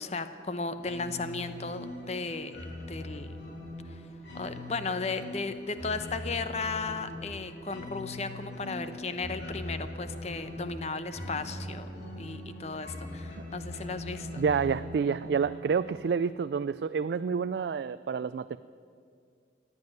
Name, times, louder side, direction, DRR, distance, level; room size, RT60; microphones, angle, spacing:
voice 1, 0.0-2.5 2.9-3.4 3.9-4.0 4.3-11.9 12.2-14.4, left 3 dB, 35° left, 11 dB, 0.8 m, -35 dB
sound 1, 0.8-16.3, left 1 dB, 70° left, 3.7 m, -41 dB
voice 2, 14.4-18.6, right 6 dB, 65° right, 13 dB, 0.3 m, -28 dB
16.0 x 9.6 x 9.6 m, 2.3 s
head